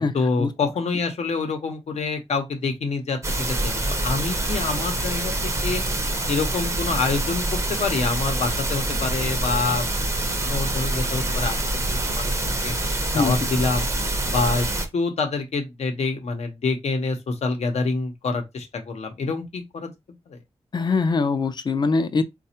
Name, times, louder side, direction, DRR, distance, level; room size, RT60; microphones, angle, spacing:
voice 1, 0.1-3.2 3.5-5.8 6.3-9.8 10.4-11.6 11.9-12.7 13.1-13.9 14.3-14.7 14.9-19.9 20.3-20.4, left 4 dB, 75° left, 0.7 m, -26 dB
sound 1, 3.2-14.9, right 2 dB, 25° right, 0.6 m, -26 dB
voice 2, 20.7-22.2, left 4 dB, 40° left, 0.4 m, -22 dB
4.1 x 2.2 x 2.8 m
wide cardioid pair, 145°, 11 cm